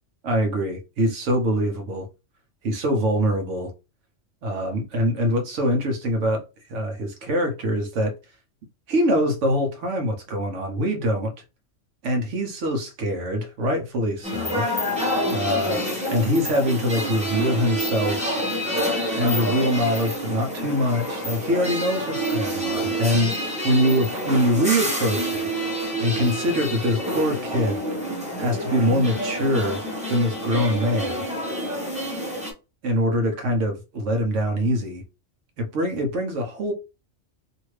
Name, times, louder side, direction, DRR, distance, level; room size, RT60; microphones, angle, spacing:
voice 1, 0.2-2.1 2.6-3.7 4.4-6.4 6.7-8.1 8.9-11.3 12.0-14.7 15.3-18.4 19.2-25.5 26.0-27.8 28.4-29.8 30.1-31.2 32.8-35.0 35.6-36.7, equal, 85° right, 1.2 m, -24 dB
sound 1, 14.2-32.5, equal, 5° right, 0.8 m, -28 dB
2.8 x 2.6 x 3.1 m
omnidirectional pair, 1.2 m